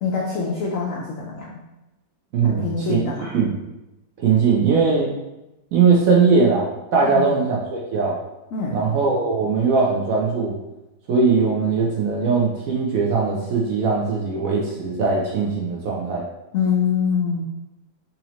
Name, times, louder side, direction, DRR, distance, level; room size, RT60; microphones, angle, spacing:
voice 1, 0.0-1.6 2.4-3.4 7.1-7.3 8.5-8.9 16.5-17.4, left 5 dB, 80° left, -3 dB, 0.7 m, -24 dB
voice 2, 2.3-3.0 3.3-3.5 4.2-5.1 5.7-8.2 8.7-10.5 11.1-16.3, right 5 dB, 70° right, -3 dB, 0.8 m, -20 dB
4.1 x 2.6 x 2.9 m, 0.96 s
omnidirectional pair, 2.0 m